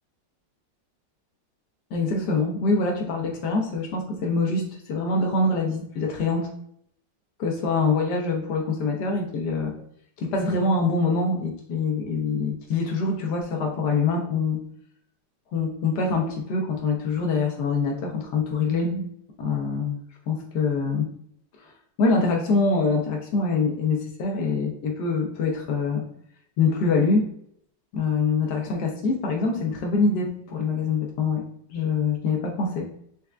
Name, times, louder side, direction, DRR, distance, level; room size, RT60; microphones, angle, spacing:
voice 1, 1.9-6.5 7.4-9.7 10.2-14.6 15.5-19.0 19.4-20.0 20.3-21.1 21.6-21.7 22.0-26.0 26.6-27.3 27.9-31.4 31.7-32.9, left 4 dB, 65° left, 1 dB, 1.1 m, -24 dB
4.3 x 3.4 x 2.4 m, 0.68 s
omnidirectional pair, 2.4 m